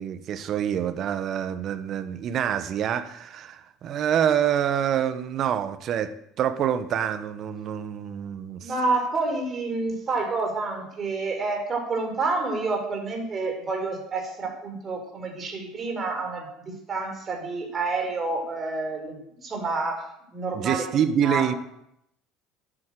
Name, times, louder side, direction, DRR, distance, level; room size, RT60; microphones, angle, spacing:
voice 1, 0.0-8.7 20.5-21.5, right 9 dB, 50° right, 12 dB, 1.2 m, -26 dB
voice 2, 8.6-20.1 20.3-20.9 21.2-21.5, right 3 dB, 35° right, 3 dB, 4.6 m, -29 dB
10.5 x 9.2 x 7.7 m, 0.78 s
supercardioid pair, 85°, 0 cm